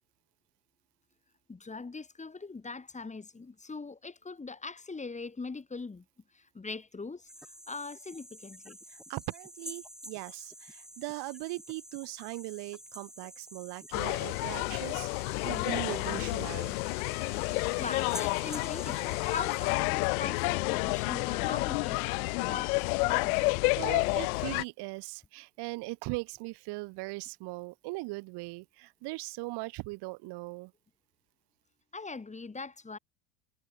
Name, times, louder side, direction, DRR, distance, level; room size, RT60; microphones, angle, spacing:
voice 1, 1.5-6.0 6.3-8.8 17.8-23.7 31.9-33.0, left 4 dB, 15° left, 7.8 m, -42 dB
sound 1, 7.3-19.7, equal, ahead, 6.1 m, -49 dB
voice 2, 8.9-16.8 23.8-30.7, right 24 dB, 60° right, 5.4 m, -39 dB
sound 2, 13.9-24.6, left 29 dB, 65° left, 0.6 m, -30 dB
hypercardioid pair, 100°, 46 cm